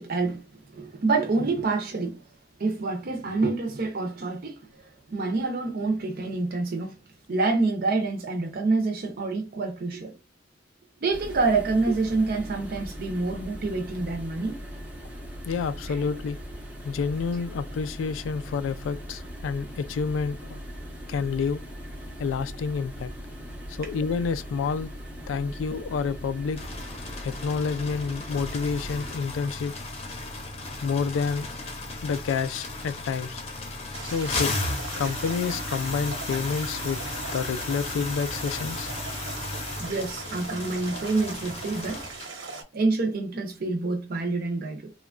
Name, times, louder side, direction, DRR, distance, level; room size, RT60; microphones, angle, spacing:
voice 1, 0.0-2.2 2.6-7.0 7.3-10.1 11.0-14.6 15.9-16.0 39.8-42.0 42.7-44.9, right 3 dB, 50° right, 0.5 m, -27 dB
sound 1, 11.1-29.1, equal, 10° right, 0.7 m, -40 dB
voice 2, 15.5-16.4 16.8-20.6 21.1-21.6 22.2-23.1 23.7-24.9 25.3-26.6 27.2-29.7 30.8-31.5 32.0-33.4 34.0-34.5 35.0-37.0 37.3-38.9, left 5 dB, 85° left, 0.3 m, -29 dB
sound 2, 26.6-42.3, left 2 dB, 35° left, 0.6 m, -35 dB
sound 3, 33.9-42.6, right 4 dB, 90° right, 0.9 m, -39 dB
3.0 x 2.2 x 2.4 m
head